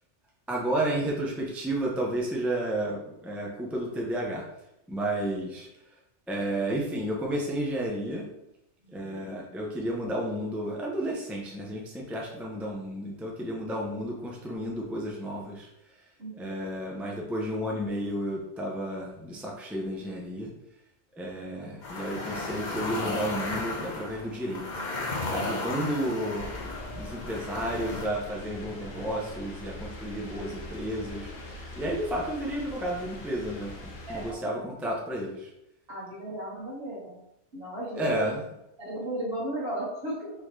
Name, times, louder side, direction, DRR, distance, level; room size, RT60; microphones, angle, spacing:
voice 1, 0.5-4.4 4.9-5.7 6.3-8.3 8.9-15.7 16.4-20.5 21.2-24.8 25.3-26.5 26.9-35.5 38.0-38.4, right 1 dB, ahead, -3 dB, 0.5 m, -32 dB
voice 2, 8.8-9.2 16.2-16.6 34.1-34.4 35.9-37.2 37.5-38.3 38.8-40.3, right 1 dB, 60° right, -6 dB, 1.6 m, -35 dB
sound 1, 21.8-28.1, left 2 dB, 45° left, 0.8 m, -34 dB
sound 2, 26.3-34.3, left 1 dB, 65° left, 1.2 m, -42 dB
4.3 x 3.6 x 3.1 m, 0.86 s
omnidirectional pair, 1.2 m